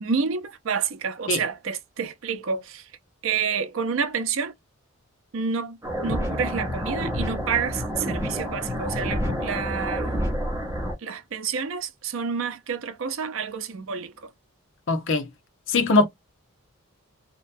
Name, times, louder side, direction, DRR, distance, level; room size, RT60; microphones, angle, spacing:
voice 1, 0.0-2.9 3.2-4.5 5.3-10.2 11.0-14.3, right 6 dB, 65° right, 0.5 m, -29 dB
sound 1, 5.8-10.9, equal, 10° right, 0.8 m, -28 dB
voice 2, 14.9-15.3 15.7-16.1, left 3 dB, 60° left, 0.8 m, -20 dB
2.8 x 2.2 x 2.5 m
head